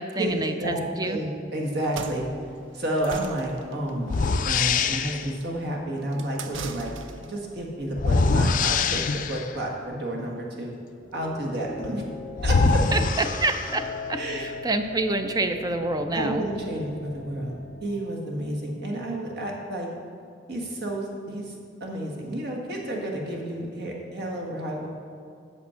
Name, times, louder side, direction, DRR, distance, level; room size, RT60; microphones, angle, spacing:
voice 1, 0.0-1.2 12.9-16.4, right 2 dB, 20° right, 7 dB, 0.5 m, -27 dB
voice 2, 0.6-2.2 2.7-6.9 7.3-10.7 11.1-12.0 12.4-12.8 14.2-14.5 16.1-17.5 17.8-19.9 20.5-21.5 21.8-24.9, right 1 dB, 60° right, -1 dB, 1.6 m, -30 dB
sound 1, 1.7-7.4, right 5 dB, 75° right, 0.5 m, -41 dB
sound 2, 3.1-3.3 4.1-5.3 8.0-9.5 11.8-11.9 12.4-14.0, left 4 dB, 45° left, 0.4 m, -23 dB
sound 3, 11.0-17.9, left 3 dB, 15° left, 1.5 m, -40 dB
8.6 x 6.5 x 5.6 m, 2.3 s
head